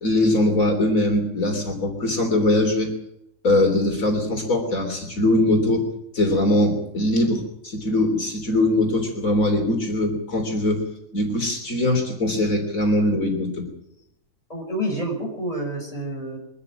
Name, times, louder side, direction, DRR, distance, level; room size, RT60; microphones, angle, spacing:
voice 1, 0.0-2.9 3.4-5.8 6.1-10.8 11.1-13.7, left 1 dB, 80° left, 3 dB, 3.8 m, -21 dB
voice 2, 14.5-16.4, right 1 dB, 25° left, 0 dB, 6.5 m, -28 dB
23.0 x 13.5 x 8.8 m, 0.78 s
omnidirectional pair, 1.4 m